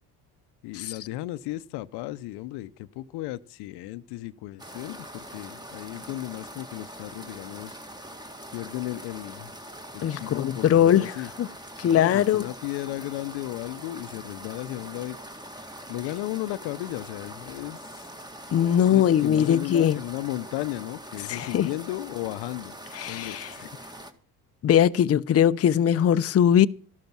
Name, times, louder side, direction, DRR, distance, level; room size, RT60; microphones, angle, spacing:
voice 1, 0.6-7.8 8.5-9.5 9.9-11.3 11.8-15.2 15.9-18.1 18.9-22.7 23.1-24.0, left 16 dB, 75° left, 0.7 m, -35 dB
sound 1, 4.6-24.1, equal, 10° right, 1.9 m, -43 dB
voice 2, 10.0-11.5 11.8-12.5 18.5-20.0 21.3-21.7 22.9-23.5 24.6-26.7, left 10 dB, 35° left, 0.6 m, -21 dB
13.5 x 12.0 x 6.0 m
supercardioid pair, 75°, 39 cm